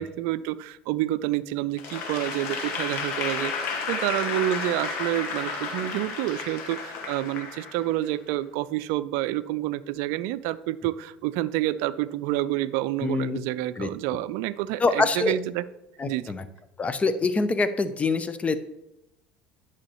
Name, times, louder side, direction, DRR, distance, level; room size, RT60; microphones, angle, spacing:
voice 1, 0.0-15.7 16.1-16.3, right 14 dB, 65° right, 16 dB, 0.4 m, -28 dB
Applause / Crowd, 1.8-8.2, left 4 dB, 60° left, 1.6 m, -32 dB
voice 2, 13.0-13.4 13.8-13.9 14.8-15.3 16.0-16.4 16.8-18.6, left 3 dB, 25° left, 12 dB, 0.7 m, -25 dB
12.5 x 6.3 x 3.0 m, 0.87 s
hypercardioid pair, 70°, 5 cm